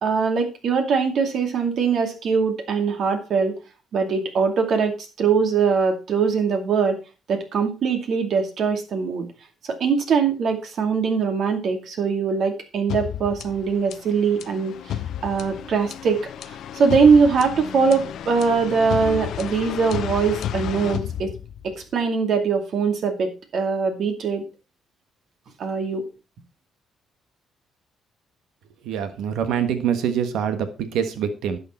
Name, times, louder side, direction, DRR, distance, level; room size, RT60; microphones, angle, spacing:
voice 1, 0.0-3.6 3.9-7.0 7.3-9.3 9.6-15.0 15.2-21.3 21.6-24.5 25.6-26.1, right 5 dB, 65° right, 5 dB, 2.4 m, -22 dB
sound 1, 12.9-21.8, left 10 dB, 75° left, 0.7 m, -32 dB
voice 2, 28.8-31.6, right 8 dB, 85° right, 9 dB, 1.5 m, -25 dB
11.0 x 6.9 x 4.3 m, 0.31 s
cardioid pair, 90°, 0 cm